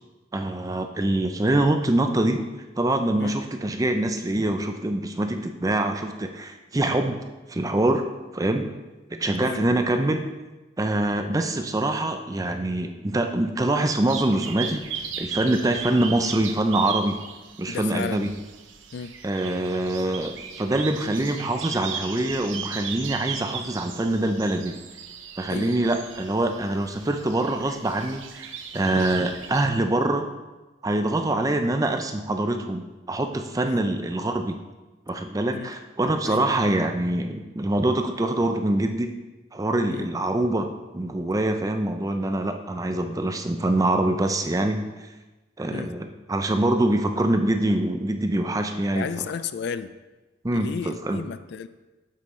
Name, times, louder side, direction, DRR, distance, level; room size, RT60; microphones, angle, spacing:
voice 1, 0.3-2.4 2.8-7.2 7.5-8.1 8.3-8.7 9.1-10.2 10.8-14.8 15.2-17.2 17.6-18.3 19.2-24.8 25.4-30.3 30.8-32.8 33.1-34.6 35.1-39.1 39.5-44.8 45.6-49.2 50.4-51.2, right 1 dB, 20° right, 6 dB, 0.4 m, -24 dB
sound 1, 14.1-29.6, right 7 dB, 75° right, 0.7 m, -37 dB
voice 2, 17.7-18.2 18.9-19.1 25.5-25.8 28.9-29.1 33.6-33.8 35.5-35.7 36.2-36.5 39.9-40.1 45.7-45.9 48.9-49.9 50.5-51.7, left 6 dB, 55° left, 13 dB, 0.3 m, -33 dB
8.1 x 7.6 x 3.2 m, 1.2 s
head